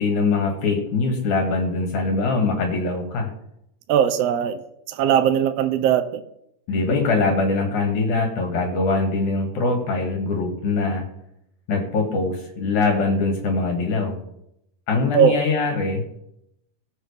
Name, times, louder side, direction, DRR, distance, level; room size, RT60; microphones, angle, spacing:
voice 1, 0.0-3.3 6.7-11.1 11.7-14.2 14.9-16.0, left 3 dB, 70° left, 2 dB, 3.4 m, -22 dB
voice 2, 3.9-4.6 4.9-6.2 15.1-15.4, right 9 dB, 75° right, 9 dB, 1.5 m, -19 dB
20.0 x 7.4 x 3.5 m, 0.77 s
omnidirectional pair, 3.6 m